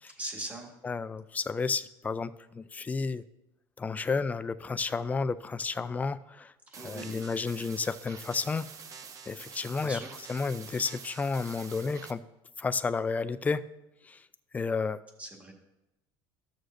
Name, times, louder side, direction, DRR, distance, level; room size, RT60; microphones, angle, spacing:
voice 1, 0.1-0.7 6.7-7.2 9.8-10.1 15.2-15.5, right 1 dB, 15° right, 1 dB, 1.6 m, -40 dB
voice 2, 0.8-3.2 3.8-6.5 6.8-8.7 9.3-10.0 10.3-12.2 12.6-13.6 14.0-14.2 14.5-15.0, left 4 dB, 15° left, 13 dB, 0.3 m, -31 dB
sound 1, 6.7-12.1, right 6 dB, 35° right, 0.6 m, -47 dB
14.0 x 6.3 x 2.6 m, 0.92 s
cardioid pair, 130°, 10 cm